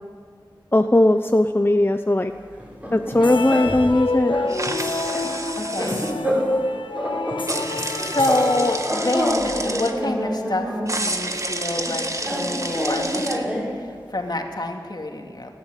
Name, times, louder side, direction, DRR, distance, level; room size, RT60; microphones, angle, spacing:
voice 1, 0.7-2.3 2.9-4.3, left 1 dB, 25° left, 7 dB, 0.8 m, -18 dB
sound 1, 2.6-3.9 4.3-4.5 4.8-6.7 6.9-8.5 8.8-10.9 11.8-13.7, equal, 15° right, 6.8 m, -26 dB
sound 2, 3.1-9.4, left 3 dB, 75° left, 1.4 m, -29 dB
sound 3, 4.5-6.1 7.5-9.9 10.9-13.4, right 2 dB, 40° right, 1.7 m, -30 dB
voice 2, 5.6-6.0 7.4-15.5, left 2 dB, 55° left, 3 dB, 2.7 m, -28 dB
29.5 x 11.0 x 9.2 m, 2.1 s
wide cardioid pair, 60°, 8 cm